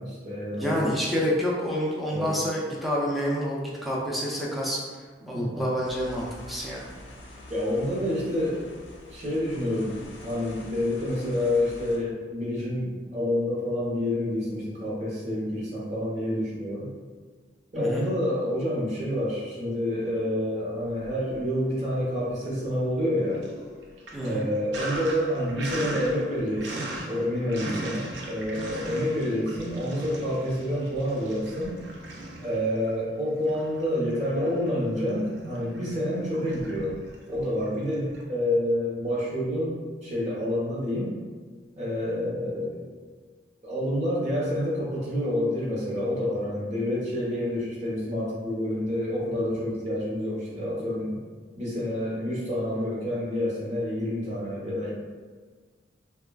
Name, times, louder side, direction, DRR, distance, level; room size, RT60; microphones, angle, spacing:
voice 1, 0.0-0.9 2.1-2.3 5.3-5.6 7.5-8.6 9.1-10.0 10.2-16.9 17.7-23.4 24.2-31.7 32.4-36.9 37.3-41.1 41.7-42.8 43.6-51.2 51.5-54.9, left 1 dB, 40° right, -6 dB, 0.8 m, -28 dB
voice 2, 0.6-7.0 17.7-18.1 24.1-24.4, equal, ahead, -5 dB, 0.3 m, -28 dB
sound 1, 5.8-12.0, left 1 dB, 85° left, 0.5 m, -46 dB
Sink (filling or washing), 20.9-21.8 22.1-38.2, right 1 dB, 75° right, 0.5 m, -39 dB
3.2 x 2.2 x 2.2 m, 1.5 s
head